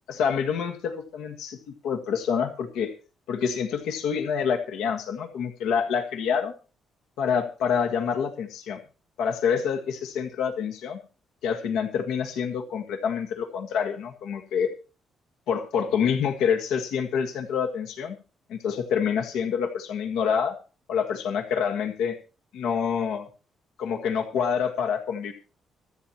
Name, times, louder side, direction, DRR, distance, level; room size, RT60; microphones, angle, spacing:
voice 1, 0.1-2.9 3.3-6.5 7.2-8.8 9.2-11.0 11.4-14.7 15.5-18.2 18.5-20.6 20.9-22.2 22.5-23.3 23.8-25.3, left 7 dB, 90° left, 3 dB, 1.7 m, -27 dB
25.0 x 8.8 x 3.0 m, 0.35 s
cardioid pair, 90°, 0 cm